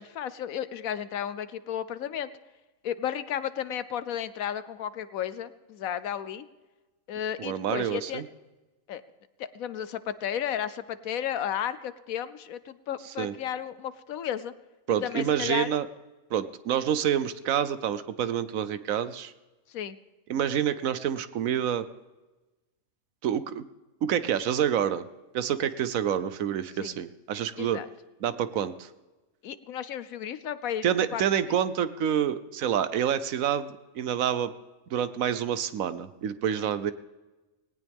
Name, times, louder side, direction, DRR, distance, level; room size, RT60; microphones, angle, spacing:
voice 1, 0.0-2.3 2.8-6.4 7.1-8.2 8.9-9.0 9.4-14.5 15.0-15.7 19.7-20.0 26.8-26.9 27.6-27.9 29.4-30.8 31.1-31.2, left 9 dB, 75° left, 14 dB, 1.2 m, -33 dB
voice 2, 7.4-8.3 13.2-13.3 14.9-15.9 16.3-19.3 20.3-21.9 23.2-23.6 24.0-25.1 25.3-27.8 28.2-28.9 30.8-34.5 34.9-36.9, right 9 dB, 75° right, 13 dB, 1.1 m, -27 dB
18.5 x 18.0 x 3.6 m, 1.1 s
omnidirectional pair, 1.5 m